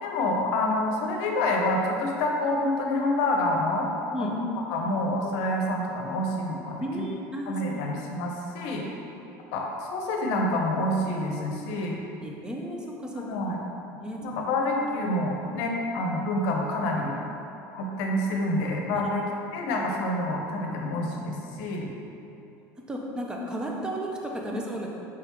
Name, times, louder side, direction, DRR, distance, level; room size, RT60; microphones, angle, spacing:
voice 1, 0.0-3.9 4.2-4.4 4.7-6.8 7.5-8.9 9.5-12.0 13.2-13.6 14.2-17.1 17.7-19.2 19.5-21.9, left 1 dB, 75° left, 0 dB, 0.7 m, -27 dB
voice 2, 6.8-8.0 9.1-9.2 11.7-11.8 12.2-13.6 13.9-14.2 18.9-19.1 22.3-22.4 22.9-24.9, equal, 10° right, -1 dB, 0.5 m, -34 dB
4.8 x 3.5 x 3.0 m, 2.9 s
cardioid pair, 135°, 7 cm